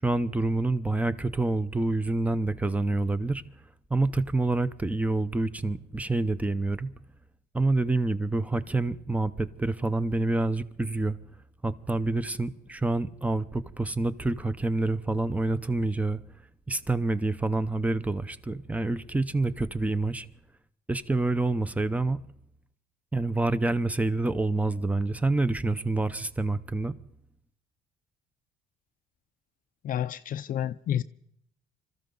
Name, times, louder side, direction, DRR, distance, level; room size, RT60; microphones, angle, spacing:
voice 1, 0.0-3.4 3.9-6.9 7.5-11.2 11.6-16.2 16.7-20.3 20.9-22.2 23.1-27.0, right 2 dB, 10° right, 0.8 m, -27 dB
voice 2, 29.8-31.0, left 10 dB, 55° left, 0.6 m, -30 dB
26.0 x 14.0 x 3.9 m
cardioid pair, 110°, 17 cm